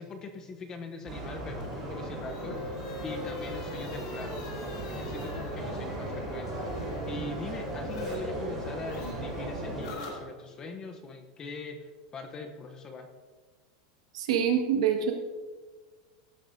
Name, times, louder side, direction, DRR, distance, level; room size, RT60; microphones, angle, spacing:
voice 1, 0.0-4.4 4.9-6.7 7.1-13.1, left 3 dB, 20° left, 5 dB, 0.8 m, -42 dB
sound 1, 1.1-9.9, right 1 dB, 10° right, 4.0 m, -36 dB
sound 2, 1.5-8.2 8.4-10.7, left 3 dB, 80° left, 3.6 m, -44 dB
voice 2, 14.1-15.1, right 8 dB, 75° right, 3 dB, 1.7 m, -25 dB
17.0 x 10.0 x 2.7 m, 1.5 s
supercardioid pair, 170°, 3 cm